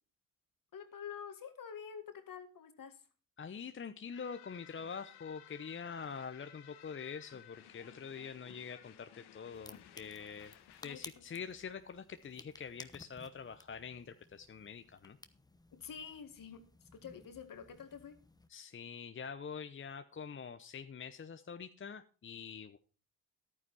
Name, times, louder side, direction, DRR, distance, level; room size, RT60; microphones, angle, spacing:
voice 1, 0.7-3.0 10.8-11.4 15.7-18.2, left 7 dB, 55° left, 8 dB, 1.9 m, -48 dB
voice 2, 3.4-10.5 10.8-15.2 18.5-22.8, left 6 dB, 30° left, 9 dB, 0.8 m, -45 dB
sound 1, 4.1-10.8, left 11 dB, 75° left, 1.1 m, -58 dB
sound 2, 9.5-18.5, left 2 dB, 10° left, 1.0 m, -57 dB
11.0 x 9.4 x 4.2 m, 0.36 s
supercardioid pair, 55°, 40 cm